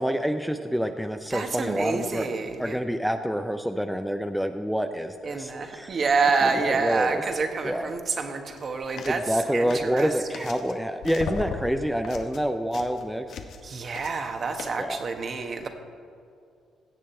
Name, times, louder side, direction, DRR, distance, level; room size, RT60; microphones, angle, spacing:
voice 1, 0.0-2.3 2.6-6.0 6.7-7.2 7.6-7.9 9.1-13.3 14.8-15.0, equal, ahead, 6 dB, 0.5 m, -27 dB
voice 2, 1.3-2.8 5.2-10.5 13.6-15.7, right 4 dB, 45° right, 5 dB, 1.3 m, -28 dB
sound 1, 8.4-8.6 9.0-9.3 9.7-10.8 11.0-13.7 13.9-14.3 14.6-14.7, left 5 dB, 70° left, 1.0 m, -37 dB
16.5 x 7.5 x 4.4 m, 2.4 s
cardioid pair, 90°, 0 cm